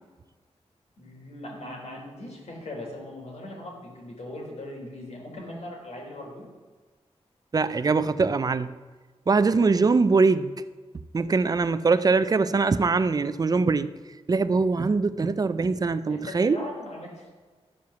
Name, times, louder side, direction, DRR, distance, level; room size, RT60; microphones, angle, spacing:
voice 1, 1.0-6.5 16.1-17.3, left 1 dB, 75° left, -2 dB, 3.4 m, -39 dB
voice 2, 7.5-8.8 9.3-10.5 11.1-13.9 14.3-16.6, right 4 dB, 35° right, 13 dB, 0.4 m, -22 dB
13.0 x 4.8 x 6.9 m, 1.4 s
wide cardioid pair, 160°, 11 cm